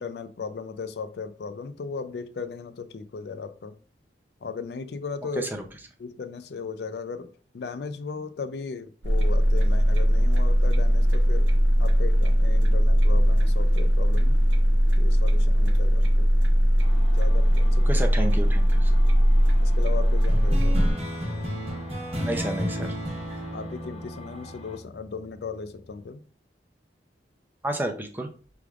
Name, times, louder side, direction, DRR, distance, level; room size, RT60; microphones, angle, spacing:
voice 1, 0.0-3.8 4.4-5.5 6.0-11.5 11.8-14.4 15.0-16.3 17.1-18.1 19.6-21.0 23.5-26.2, left 5 dB, 65° left, 11 dB, 0.4 m, -37 dB
sound 1, 9.0-20.9, equal, 90° right, 0.7 m, -20 dB
sound 2, 16.8-24.8, left 2 dB, 30° left, 0.7 m, -47 dB
voice 2, 17.9-18.9 22.2-22.9 27.6-28.3, right 1 dB, 10° right, 4 dB, 0.5 m, -30 dB
sound 3, 20.3-25.2, equal, 35° right, 1.1 m, -33 dB
5.9 x 3.4 x 2.4 m, 0.40 s
head